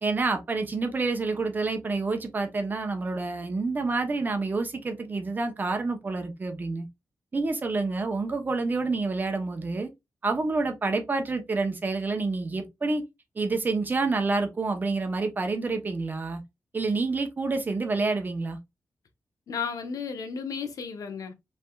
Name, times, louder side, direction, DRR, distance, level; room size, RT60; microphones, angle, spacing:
voice 1, 0.0-6.9 7.3-9.9 10.2-13.0 13.4-16.4 16.7-18.6, right 3 dB, 30° right, 0.9 m, -28 dB
voice 2, 19.5-21.3, left 6 dB, 75° left, 0.9 m, -33 dB
5.3 x 3.4 x 2.4 m
wide cardioid pair, 150°, 6 cm